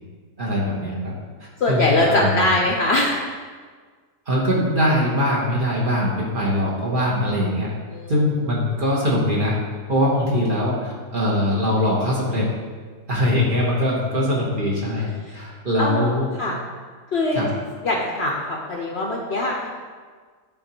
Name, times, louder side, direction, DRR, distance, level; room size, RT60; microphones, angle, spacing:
voice 1, 0.4-1.1 1.4-2.5 4.3-7.7 8.1-9.6 9.9-12.5 13.1-16.3 17.3-17.5, left 1 dB, 40° right, -5 dB, 1.1 m, -22 dB
voice 2, 1.6-3.2 7.9-8.1 15.3-15.4 15.8-16.1 16.4-16.6 17.1-17.5 17.8-19.7, left 2 dB, 60° left, -1 dB, 0.8 m, -22 dB
10.0 x 3.5 x 2.9 m, 1.6 s
omnidirectional pair, 1.5 m